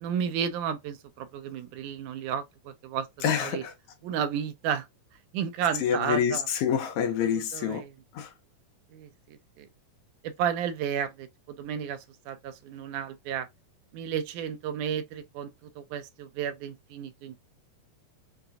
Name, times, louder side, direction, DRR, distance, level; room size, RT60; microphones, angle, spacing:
voice 1, 0.0-3.1 3.4-3.6 4.0-4.9 5.3-6.5 7.2-7.9 8.9-9.7 10.2-13.5 13.9-15.5 15.8-17.5, right 8 dB, 80° right, 1.9 m, -32 dB
voice 2, 3.2-3.7 5.8-7.8 8.1-8.3, left 8 dB, 80° left, 1.7 m, -27 dB
5.9 x 2.2 x 2.5 m
omnidirectional pair, 4.2 m